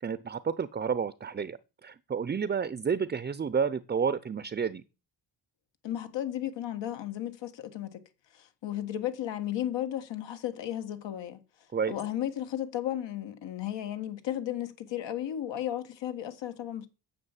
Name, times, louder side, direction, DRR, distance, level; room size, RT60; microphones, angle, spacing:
voice 1, 0.0-4.8 11.7-11.9, right 6 dB, 25° right, 0.5 m, -30 dB
voice 2, 5.8-8.0 8.3-11.4 11.9-16.9, left 11 dB, 85° left, 1.6 m, -34 dB
9.8 x 7.0 x 7.2 m
cardioid pair, 125°, 43 cm